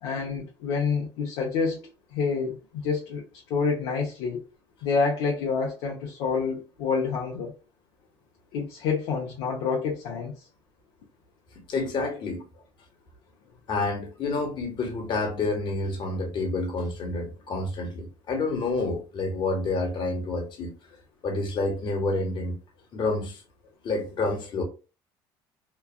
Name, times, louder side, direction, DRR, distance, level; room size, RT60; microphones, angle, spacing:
voice 1, 0.0-3.2 3.5-4.4 4.8-7.5 8.5-10.3, left 5 dB, 75° left, 0.8 m, -28 dB
voice 2, 11.7-12.4 13.7-20.7 21.2-22.6 22.9-23.4 23.8-24.6, left 3 dB, 50° left, 1.3 m, -28 dB
3.1 x 2.3 x 2.2 m
supercardioid pair, 85°, 10 cm